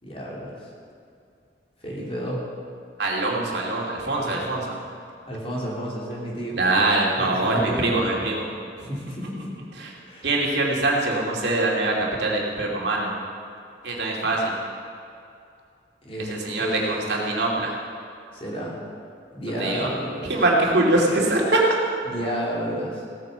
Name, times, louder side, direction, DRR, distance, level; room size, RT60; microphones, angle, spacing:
voice 1, 0.0-0.7 1.8-2.4 5.3-6.6 7.2-7.9 8.9-9.6 10.1-10.3 16.0-17.2 18.3-18.8 19.3-20.4 22.0-23.0, equal, 30° left, -4 dB, 3.1 m, -31 dB
voice 2, 3.0-4.8 6.6-8.5 8.8-8.9 9.8-9.9 10.2-13.1 13.8-14.6 16.2-17.7 19.6-19.9 20.2-21.6, right 2 dB, 65° right, -3 dB, 2.7 m, -23 dB
16.5 x 9.1 x 6.9 m, 2.4 s
head